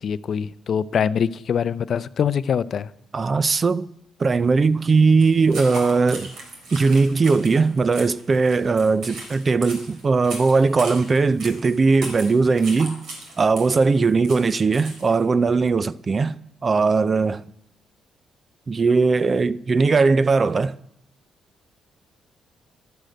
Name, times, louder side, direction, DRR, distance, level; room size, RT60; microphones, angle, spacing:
voice 1, 0.0-2.9, left 7 dB, 55° left, 0.5 m, -24 dB
voice 2, 3.1-3.9 4.2-6.3 6.7-13.0 13.4-16.4 16.6-17.4 18.7-20.8, right 4 dB, 35° right, 0.5 m, -19 dB
sound 1, 5.2-15.2, right 2 dB, 80° right, 4.3 m, -38 dB
12.0 x 11.5 x 7.7 m
cardioid pair, 90°, 0 cm